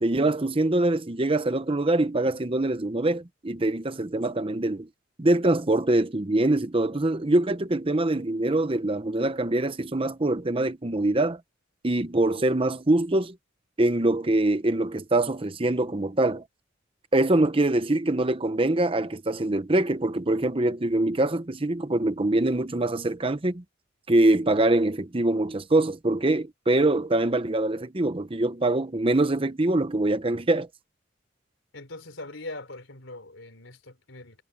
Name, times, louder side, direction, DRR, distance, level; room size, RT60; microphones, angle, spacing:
voice 1, 0.0-4.9 5.2-11.4 11.8-13.4 13.8-16.4 17.1-23.6 24.1-30.7, right 2 dB, 25° right, 0.9 m, -24 dB
voice 2, 31.7-34.4, left 2 dB, 70° left, 3.9 m, -41 dB
head